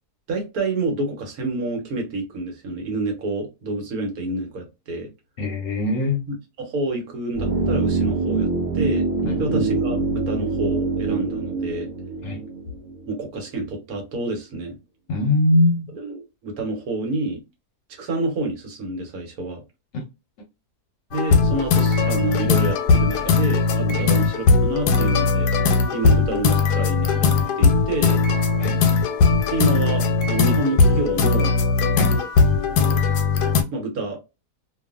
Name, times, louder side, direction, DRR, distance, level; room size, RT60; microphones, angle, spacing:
voice 1, 0.3-5.1 6.6-8.5 8.7-9.1 9.4-11.9 13.1-14.8 16.0-17.4 18.0-19.6 21.1-25.5 25.9-28.2 29.5-31.6 32.7-33.0 33.7-34.2, right 2 dB, 65° right, 1.3 m, -28 dB
voice 2, 5.4-6.2 9.2-9.7 12.2-12.4 15.1-15.9 19.9-20.0 23.9-24.1 28.6-28.7 32.0-32.1, left 2 dB, 60° left, 0.9 m, -22 dB
sound 1, 7.3-13.4 13.6-13.7, right 3 dB, 15° right, 0.8 m, -24 dB
sound 2, 21.1-33.6, left 4 dB, 85° left, 1.2 m, -19 dB
2.7 x 2.4 x 2.3 m
omnidirectional pair, 1.7 m